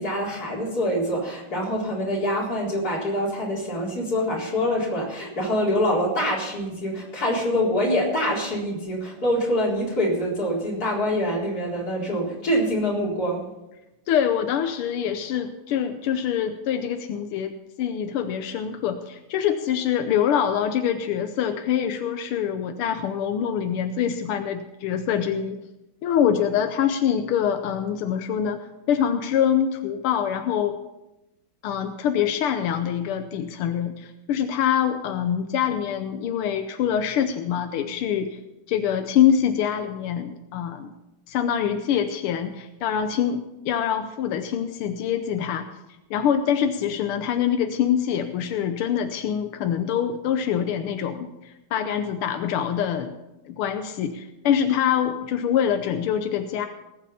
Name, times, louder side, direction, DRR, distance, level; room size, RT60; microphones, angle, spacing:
voice 1, 0.0-13.4, equal, 45° left, -3 dB, 4.5 m, -25 dB
voice 2, 14.1-25.6 26.0-30.8 31.6-38.4 38.7-40.9 41.3-45.7 46.1-53.1 53.5-56.7, left 9 dB, 90° left, 7 dB, 1.7 m, -25 dB
19.0 x 8.8 x 5.5 m, 0.95 s
omnidirectional pair, 2.3 m